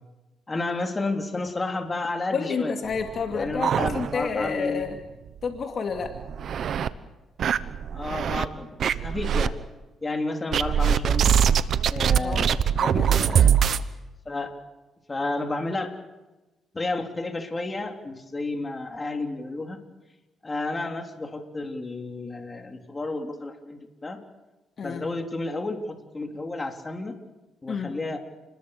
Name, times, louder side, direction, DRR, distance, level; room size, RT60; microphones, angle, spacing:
voice 1, 0.5-2.8 3.3-4.9 7.9-9.6 10.0-11.3 11.9-13.6 14.3-14.6 15.1-16.0 16.7-19.8 20.4-24.2 24.8-27.2 27.6-28.2, left 2 dB, 25° left, 4 dB, 3.7 m, -31 dB
voice 2, 2.3-5.0 5.4-6.2 12.2-12.5 12.8-13.2 24.8-25.1 27.7-27.9, left 5 dB, 50° left, 4 dB, 2.5 m, -29 dB
sound 1, 2.9-4.5 4.8-4.9 5.3-5.4 6.0-6.9 7.4-8.5 8.8-9.5 10.5-13.8, right 8 dB, 60° right, 1.2 m, -22 dB
30.0 x 21.0 x 6.8 m, 1.1 s
cardioid pair, 90°, 0 cm